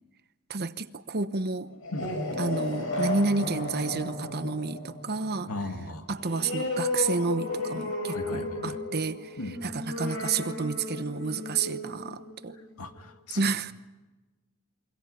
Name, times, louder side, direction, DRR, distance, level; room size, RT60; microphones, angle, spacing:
voice 1, 0.5-1.7 2.4-5.5 6.1-12.6 13.4-13.7, right 4 dB, 45° right, 1.0 m, -30 dB
sound 1, 1.7-12.9, left 2 dB, 65° left, 7.0 m, -34 dB
voice 2, 5.5-6.1 8.1-8.8 9.4-9.6 12.8-13.4, left 2 dB, 80° left, 2.3 m, -37 dB
28.0 x 24.5 x 5.6 m
head